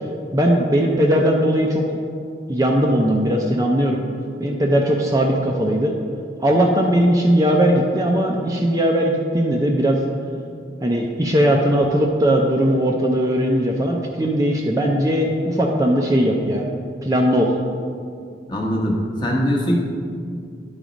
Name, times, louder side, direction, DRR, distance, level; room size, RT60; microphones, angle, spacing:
voice 1, 0.3-1.9 2.5-4.0 4.4-5.9 6.4-10.0 10.8-16.7 17.0-17.5, equal, 20° right, 0 dB, 0.5 m, -19 dB
voice 2, 18.5-18.9 19.2-19.8, equal, 25° left, -2 dB, 1.0 m, -21 dB
10.5 x 4.0 x 5.0 m, 2.3 s
head